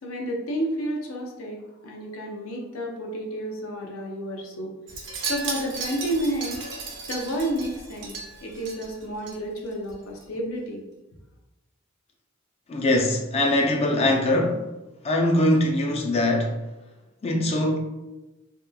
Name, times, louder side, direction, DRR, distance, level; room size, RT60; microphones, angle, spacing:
voice 1, 0.0-1.6 1.8-4.7 5.3-8.1 8.4-10.8, right 1 dB, 90° left, 0.6 m, -31 dB
Wind chime, 4.9-9.4 9.7-9.9 10.2-10.3, right 4 dB, 60° right, 0.6 m, -35 dB
voice 2, 12.7-14.6 15.0-16.5 17.2-17.8, left 1 dB, 30° left, 0.4 m, -22 dB
2.9 x 2.2 x 2.2 m
head